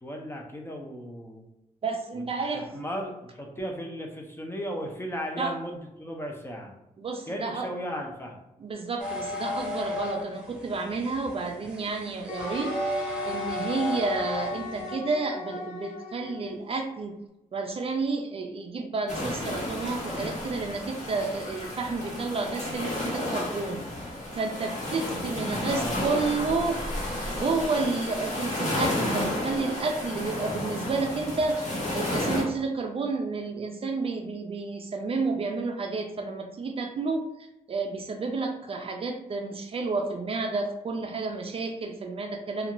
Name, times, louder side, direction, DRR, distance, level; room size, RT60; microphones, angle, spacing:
voice 1, 0.0-1.4 2.1-2.2 2.5-6.7 7.3-8.4 25.5-26.6, equal, 15° left, 1 dB, 0.5 m, -36 dB
voice 2, 1.8-2.6 5.4-5.5 7.0-7.7 8.6-17.2 17.5-23.8 24.3-26.8 27.3-42.7, right 3 dB, 40° right, 3 dB, 0.4 m, -31 dB
sound 1, 9.0-14.9, left 1 dB, 5° right, 0.9 m, -34 dB
Wind instrument woodwind instrument, 12.3-16.6, left 1 dB, 90° left, 0.4 m, -37 dB
sound 2, 19.1-32.4, left 1 dB, 50° left, 1.0 m, -32 dB
2.4 x 2.3 x 2.9 m, 0.90 s
cardioid pair, 90°, 15 cm